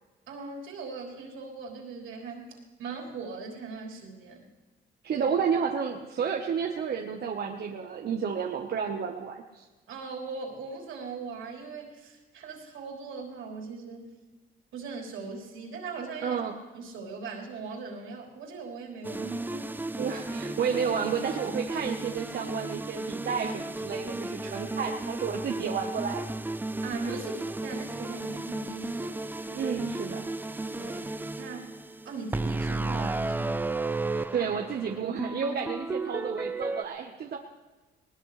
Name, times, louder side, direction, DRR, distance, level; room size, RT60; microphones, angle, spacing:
voice 1, 0.3-4.5 5.2-5.3 9.9-14.1 14.7-16.4 16.7-19.8 24.0-24.7 26.8-29.2 30.7-31.1 31.4-31.8 32.1-33.6, right 4 dB, 80° right, -1 dB, 3.7 m, -40 dB
voice 2, 5.0-9.7 16.2-16.6 20.0-26.2 29.5-30.3 34.1-37.4, right 6 dB, 55° right, 2 dB, 1.2 m, -31 dB
sound 1, 19.0-36.8, right 2 dB, 10° right, 0.6 m, -34 dB
19.5 x 19.5 x 3.4 m, 1.3 s
cardioid pair, 90°, 20 cm